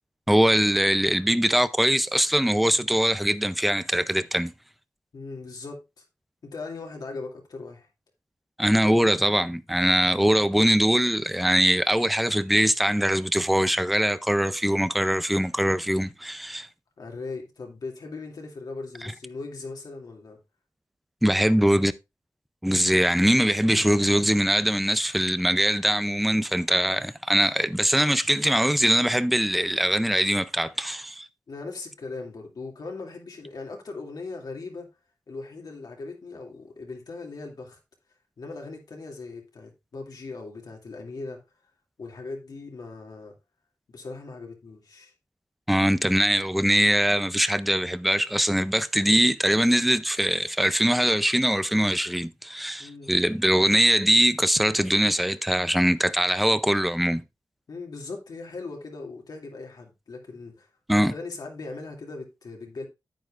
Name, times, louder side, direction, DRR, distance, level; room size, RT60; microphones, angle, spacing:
voice 1, 0.3-4.5 8.6-16.7 21.2-21.9 22.6-31.3 45.7-57.2 60.9-61.1, equal, ahead, 0.5 m, -22 dB
voice 2, 5.1-6.0 6.4-7.9 17.0-20.4 31.5-34.9 35.3-37.8 38.4-41.4 42.0-43.3 43.9-45.1 52.8-53.1 57.7-60.7 60.9-62.9, left 3 dB, 75° left, 2.5 m, -39 dB
9.4 x 9.1 x 2.5 m
wide cardioid pair, 75°, 7 cm